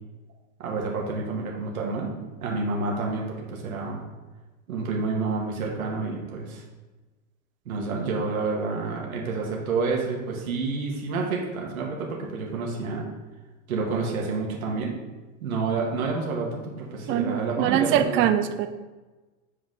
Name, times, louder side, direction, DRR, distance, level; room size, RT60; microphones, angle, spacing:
voice 1, 0.6-2.1 2.4-4.0 4.7-6.6 7.7-13.1 13.7-14.9 15.4-18.3, right 4 dB, 75° right, -1 dB, 1.9 m, -29 dB
voice 2, 17.1-18.7, right 10 dB, 30° right, 10 dB, 0.5 m, -23 dB
8.0 x 4.7 x 3.9 m, 1.2 s
hypercardioid pair, 105°, 42 cm